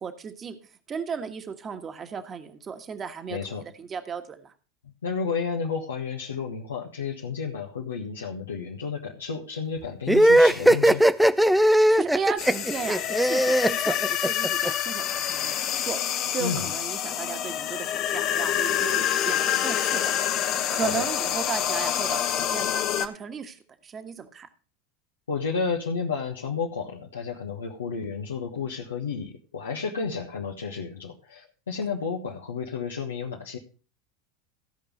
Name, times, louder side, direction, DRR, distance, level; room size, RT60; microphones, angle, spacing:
voice 1, 0.0-0.6 0.9-3.4 3.8-4.5 11.9-24.5, right 6 dB, 30° right, 7 dB, 1.4 m, -35 dB
voice 2, 3.3-3.6 5.0-11.0 16.4-16.7 20.8-21.1 25.3-33.6, left 5 dB, 85° left, -2 dB, 1.4 m, -31 dB
sound 1, 10.1-14.7, right 1 dB, 5° right, 0.5 m, -18 dB
sound 2, 12.4-23.1, left 10 dB, 50° left, 1.1 m, -27 dB
15.5 x 5.3 x 5.4 m, 0.36 s
hypercardioid pair, 85°, 0 cm